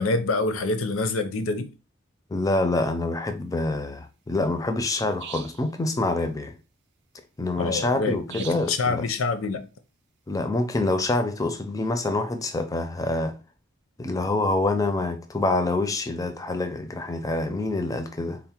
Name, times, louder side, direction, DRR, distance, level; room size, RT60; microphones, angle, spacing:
voice 1, 0.0-1.7 7.6-9.7, left 3 dB, 75° left, 0.6 m, -26 dB
voice 2, 2.3-6.5 7.4-9.1 10.3-13.4 14.0-18.4, left 2 dB, 15° left, 0.4 m, -26 dB
sound 1, 5.2-5.7 8.3-8.8, right 9 dB, 55° right, 0.4 m, -40 dB
3.8 x 2.0 x 4.3 m
head